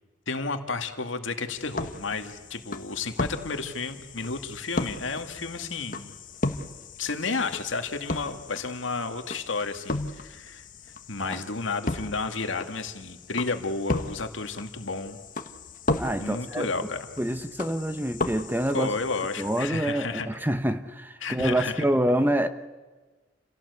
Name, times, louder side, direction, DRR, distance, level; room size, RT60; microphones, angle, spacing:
voice 1, 0.3-6.1 7.0-10.6 11.1-15.2 16.2-17.0 18.7-20.3 21.2-21.9, left 4 dB, 85° left, 7 dB, 2.0 m, -32 dB
sound 1, 1.5-19.7, left 2 dB, 45° left, 1.3 m, -35 dB
voice 2, 16.0-16.9 17.2-18.9 19.4-22.5, right 1 dB, 10° right, 10 dB, 0.9 m, -26 dB
29.0 x 17.0 x 8.3 m, 1.3 s
head